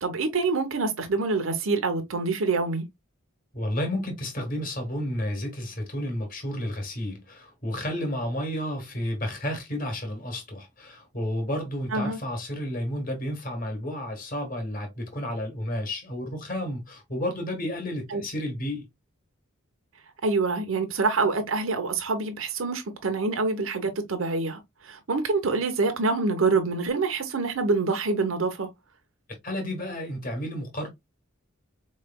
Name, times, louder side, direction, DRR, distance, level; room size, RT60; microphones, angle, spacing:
voice 1, 0.0-2.8 11.9-12.2 18.1-18.2 20.2-28.7, right 3 dB, 75° right, 0.9 m, -26 dB
voice 2, 3.5-18.9 29.4-30.9, left 1 dB, 40° left, 1.5 m, -31 dB
4.3 x 3.2 x 2.2 m
head